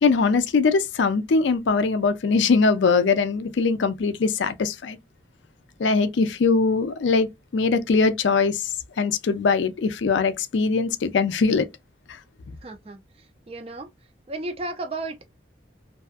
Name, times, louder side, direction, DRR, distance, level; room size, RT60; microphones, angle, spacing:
voice 1, 0.0-5.0 5.8-11.7, left 4 dB, 75° left, 0.4 m, -21 dB
voice 2, 12.6-13.9 14.3-15.3, right 2 dB, 30° right, 0.4 m, -34 dB
2.6 x 2.3 x 2.4 m
head